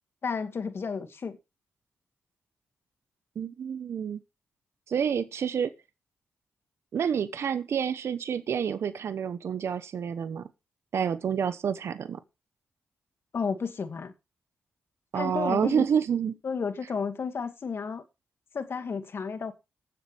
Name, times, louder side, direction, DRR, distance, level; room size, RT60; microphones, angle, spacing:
voice 1, 0.2-1.4 13.3-14.1 15.1-15.9 16.4-18.0 18.5-19.5, left 5 dB, 60° left, 2.2 m, -32 dB
voice 2, 3.4-4.2 4.9-5.7 6.9-10.5 10.9-12.2 15.1-16.4, right 7 dB, 70° right, 1.0 m, -28 dB
18.5 x 7.7 x 3.5 m
cardioid pair, 55°, 5 cm